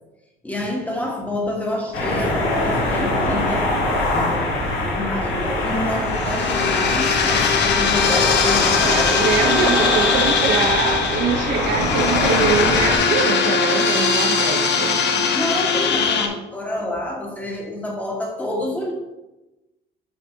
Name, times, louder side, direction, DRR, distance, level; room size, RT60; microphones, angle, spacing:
voice 1, 0.4-3.7 4.1-4.5 4.8-9.2 15.1-18.9, left 1 dB, 5° left, 0 dB, 1.3 m, -28 dB
sound 1, 1.9-12.9, left 2 dB, 85° left, 1.9 m, -23 dB
sound 2, 6.0-16.3, left 5 dB, 60° left, 0.9 m, -20 dB
voice 2, 8.8-15.0 16.1-16.2, right 6 dB, 65° right, 2 dB, 1.3 m, -23 dB
9.8 x 5.2 x 3.1 m, 1.0 s
cardioid pair, 160°, 20 cm